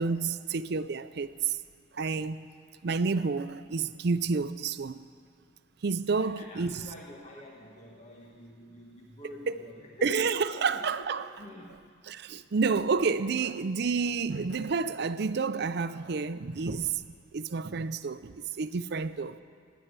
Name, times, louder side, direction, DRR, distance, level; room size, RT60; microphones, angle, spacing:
voice 1, 0.0-1.6 1.9-2.5 2.8-5.0 5.8-6.9 9.5-9.6 10.0-11.3 12.1-17.0 17.3-19.4, right 4 dB, 60° right, 0.5 m, -29 dB
voice 2, 6.1-10.1 10.5-11.7, left 1 dB, 40° left, 1.5 m, -48 dB
17.0 x 10.5 x 8.1 m
head